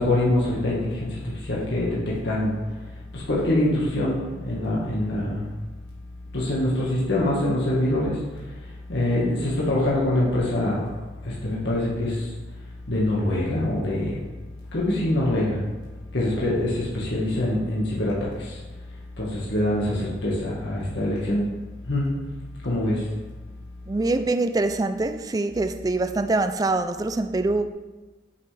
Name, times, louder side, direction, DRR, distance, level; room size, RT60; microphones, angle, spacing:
voice 1, 0.0-2.5 3.1-5.5 6.3-8.2 8.9-10.8 11.2-12.3 12.9-14.3 14.7-15.6 16.1-18.6 19.2-21.4 21.9-22.1 22.6-23.0, left 1 dB, 75° left, 1.4 m, -24 dB
voice 2, 23.9-27.7, right 2 dB, 20° right, 0.3 m, -24 dB
8.2 x 5.7 x 3.3 m
head